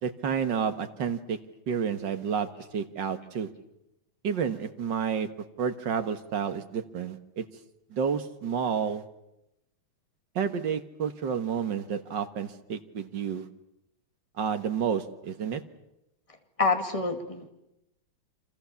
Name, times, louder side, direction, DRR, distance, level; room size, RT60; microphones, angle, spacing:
voice 1, 0.0-1.4 1.7-3.5 4.2-5.3 5.6-7.5 7.9-9.0 10.4-13.5 14.4-15.6, right 7 dB, 65° right, 9 dB, 2.1 m, -30 dB
voice 2, 16.6-17.5, left 3 dB, 15° left, 5 dB, 2.5 m, -27 dB
29.0 x 26.0 x 7.2 m, 0.88 s
omnidirectional pair, 2.2 m